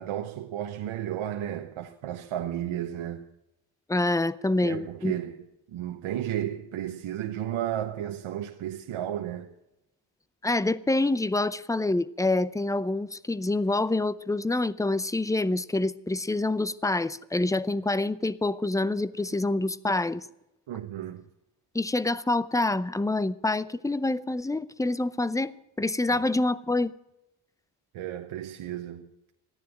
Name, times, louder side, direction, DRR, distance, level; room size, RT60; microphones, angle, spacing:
voice 1, 0.0-3.2 4.6-9.5 20.7-21.2 27.9-29.1, right 11 dB, 75° right, 1.1 m, -33 dB
voice 2, 3.9-5.1 10.4-20.3 21.7-26.9, left 2 dB, 5° left, 0.5 m, -26 dB
14.0 x 9.8 x 7.8 m
cardioid pair, 95°, 49 cm